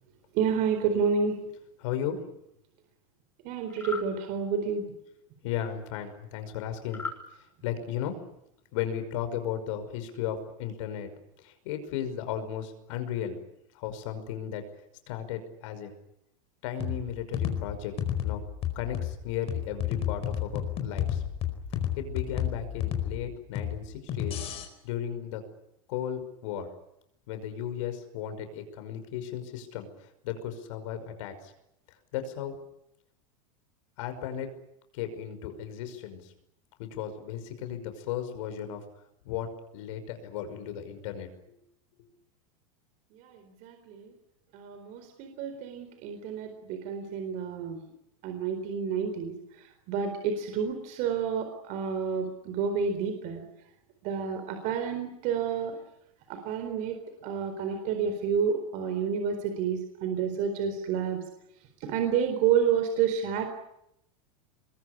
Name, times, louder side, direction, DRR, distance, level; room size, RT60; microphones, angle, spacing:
voice 1, 0.3-1.3 3.4-4.9 43.2-43.3 43.6-44.1 44.5-47.8 48.2-49.3 49.9-53.4 54.0-55.8 56.3-57.0 57.2-61.2 61.8-63.4, right 7 dB, 45° right, 7 dB, 4.2 m, -29 dB
voice 2, 1.8-2.3 5.4-7.1 7.6-8.2 8.7-11.1 11.4-13.4 13.7-14.6 15.1-15.9 16.6-17.9 18.2-18.4 18.8-21.2 22.0-24.4 24.8-25.4 25.9-26.7 27.3-31.5 32.1-32.6 34.0-34.5 34.9-36.3 36.8-38.8 39.3-41.3, left 9 dB, 65° left, 8 dB, 5.6 m, -35 dB
sound 1, 3.7-4.1 6.9-7.2, left 4 dB, 10° left, 6.7 m, -36 dB
sound 2, 16.8-24.7, left 10 dB, 35° left, 4.8 m, -32 dB
24.5 x 22.0 x 9.9 m, 0.81 s
supercardioid pair, 140°, 17 cm